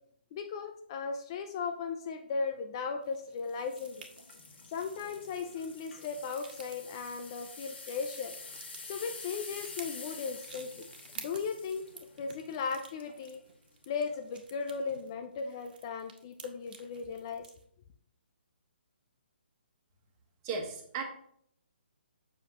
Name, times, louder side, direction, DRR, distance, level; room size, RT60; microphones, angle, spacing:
voice 1, 0.3-4.0 4.7-8.3 8.9-10.9 11.2-11.8 12.2-13.4 13.9-17.4, left 5 dB, 25° left, 6 dB, 0.5 m, -37 dB
sound 1, 3.0-17.6, right 5 dB, 55° right, 1.6 m, -53 dB
sound 2, 3.5-13.4 13.9-14.2 14.7-14.8, left 4 dB, 80° left, 2.1 m, -48 dB
voice 2, 20.4-21.0, right 4 dB, 25° right, 3 dB, 1.4 m, -35 dB
7.8 x 7.2 x 3.0 m, 0.67 s
hypercardioid pair, 165°, 6 cm